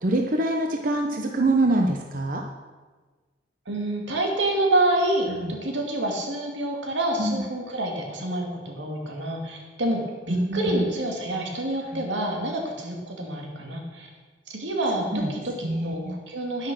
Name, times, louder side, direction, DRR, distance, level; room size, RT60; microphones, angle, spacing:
voice 1, 0.0-2.4 5.3-5.5 7.2-7.4 10.3-10.9 11.9-12.0 15.1-15.3 15.6-16.2, right 2 dB, 50° right, 2 dB, 0.9 m, -25 dB
voice 2, 3.7-14.1 14.5-16.7, right 1 dB, 85° right, 1 dB, 2.6 m, -27 dB
10.5 x 10.0 x 6.4 m, 1.3 s
head